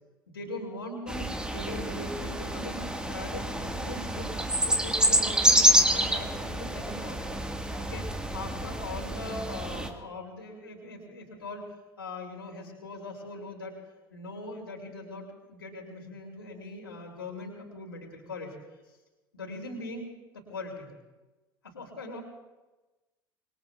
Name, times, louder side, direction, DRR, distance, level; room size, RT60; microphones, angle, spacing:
voice 1, 0.3-2.8 3.1-5.6 5.9-7.5 7.9-8.1 8.3-11.7 12.0-13.8 14.1-18.6 19.3-20.9 21.6-22.2, left 2 dB, 80° left, -2 dB, 2.8 m, -40 dB
sound 1, 1.1-9.9, equal, 5° right, 1.5 m, -27 dB
25.5 x 20.5 x 2.3 m, 1.1 s
figure-of-eight pair, 70°, 12 cm